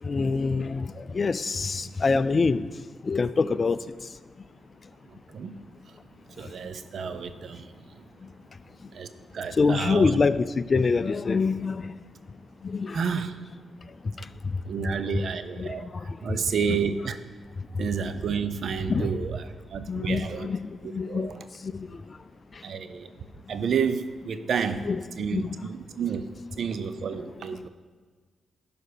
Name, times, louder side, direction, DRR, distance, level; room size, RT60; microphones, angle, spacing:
voice 1, 0.0-2.7 3.0-3.8 9.6-11.9 12.6-13.0 15.6-16.2 16.7-16.8 18.9-19.1 19.9-21.3 21.6-22.0 24.9-25.0 25.3-25.6, left 4 dB, 45° left, 0.4 m, -25 dB
voice 2, 6.4-7.7 8.9-9.1 9.3-10.2 12.9-13.4 14.7-15.9 16.2-17.2 17.8-20.5 20.8-21.4 22.6-23.1 23.5-24.9 25.2-26.2 26.6-27.7, right 6 dB, 65° right, 0.6 m, -30 dB
12.0 x 5.0 x 5.0 m
supercardioid pair, 50°, 0 cm